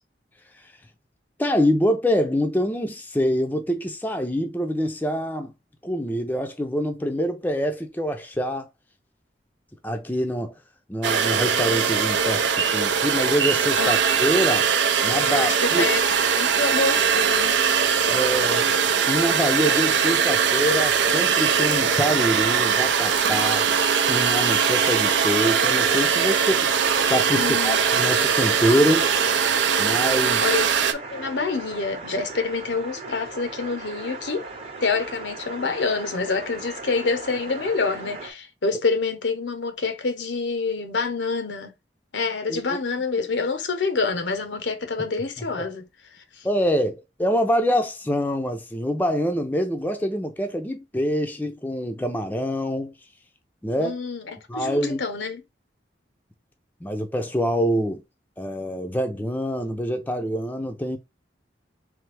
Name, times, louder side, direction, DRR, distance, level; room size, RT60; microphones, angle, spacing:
voice 1, 1.4-5.5 5.8-8.7 9.8-10.5 10.9-14.7 15.0-15.8 18.1-18.7 19.1-23.6 24.1-26.7 27.1-29.1 29.8-30.5 42.5-42.8 46.4-52.9 53.6-54.0 54.5-55.0 56.8-58.0 58.4-61.0, equal, 10° left, 0.5 m, -25 dB
sound 1, 11.0-30.9, right 6 dB, 90° right, 0.5 m, -21 dB
voice 2, 15.2-17.6 27.3-27.8 30.4-34.5 34.8-41.7 42.1-45.8 53.8-54.2 54.5-55.4, left 4 dB, 85° left, 0.9 m, -27 dB
sound 2, 18.6-38.3, right 3 dB, 35° right, 0.9 m, -38 dB
3.4 x 3.3 x 3.3 m
head